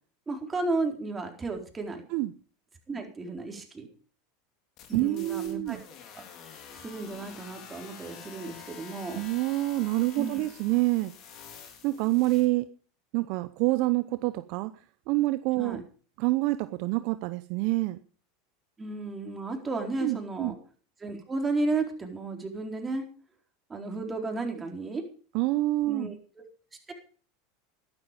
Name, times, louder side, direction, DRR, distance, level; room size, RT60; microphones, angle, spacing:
voice 1, 0.3-2.0 2.9-3.9 4.9-5.8 6.1-6.2 6.5-9.2 10.2-10.4 15.6-15.8 18.8-20.5 21.0-23.0 23.7-25.0 25.9-26.1 26.9-27.0, right 3 dB, 20° right, 3 dB, 4.2 m, -33 dB
sound 1, 4.8-12.5, left 7 dB, 50° left, 3.7 m, -48 dB
voice 2, 4.9-5.8 9.1-11.1 11.8-12.7 13.1-14.7 15.1-15.8 16.2-18.0 20.0-20.5 25.3-26.1, right 19 dB, 60° right, 13 dB, 0.7 m, -27 dB
13.0 x 11.5 x 5.3 m, 0.41 s
hypercardioid pair, 90°, 0 cm